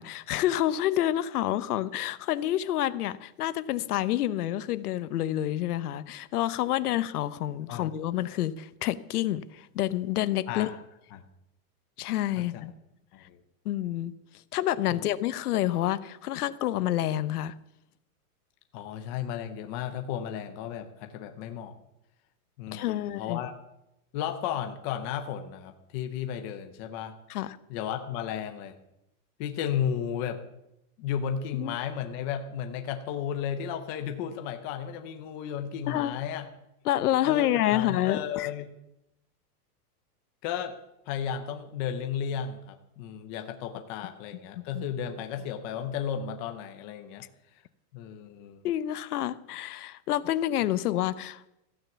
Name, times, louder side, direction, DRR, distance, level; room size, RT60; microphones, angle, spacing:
voice 1, 0.0-10.7 12.0-12.7 13.6-14.1 14.5-17.6 22.7-23.4 27.3-27.6 31.5-31.8 35.9-36.2 36.8-38.5 44.7-44.8 48.6-51.5, left 13 dB, 75° left, 15 dB, 1.0 m, -28 dB
voice 2, 18.7-21.8 22.6-23.5 24.1-27.2 27.7-28.7 29.4-30.4 31.0-36.5 37.2-38.7 40.4-40.7 41.1-47.2 47.9-48.6, left 8 dB, 15° left, 6 dB, 0.5 m, -34 dB
15.0 x 9.2 x 7.0 m, 0.86 s
supercardioid pair, 170°, 46 cm